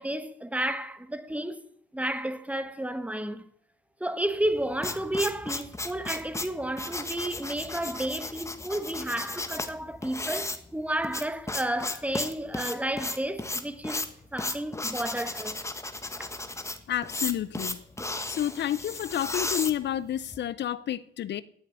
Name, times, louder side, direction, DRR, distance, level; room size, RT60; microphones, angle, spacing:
voice 1, 0.0-1.6 1.9-3.5 4.0-14.0 14.3-15.6 16.2-16.3, right 1 dB, 5° right, 1.3 m, -31 dB
sound 1, 4.4-20.4, left 2 dB, 15° left, 1.6 m, -35 dB
voice 2, 16.9-17.8 18.3-21.4, left 11 dB, 60° left, 0.7 m, -30 dB
17.5 x 6.6 x 9.9 m
cardioid pair, 90°, 20 cm